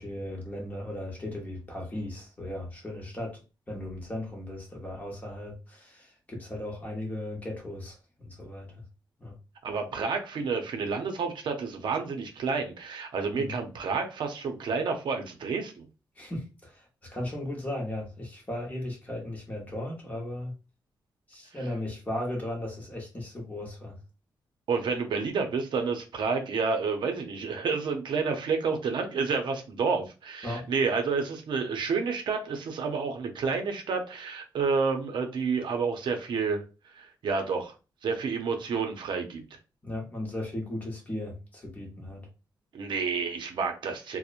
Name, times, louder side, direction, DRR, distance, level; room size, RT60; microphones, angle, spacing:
voice 1, 0.0-3.4 3.7-8.8 9.2-9.3 13.3-13.6 16.2-20.5 21.3-24.0 30.4-30.7 39.8-42.3, left 1 dB, 20° left, 0.9 m, -36 dB
voice 2, 9.6-15.9 24.7-36.7 36.9-37.7 38.0-39.4 42.7-44.2, right 5 dB, 70° right, 0.5 m, -29 dB
2.8 x 2.0 x 2.4 m
wide cardioid pair, 165°, 8 cm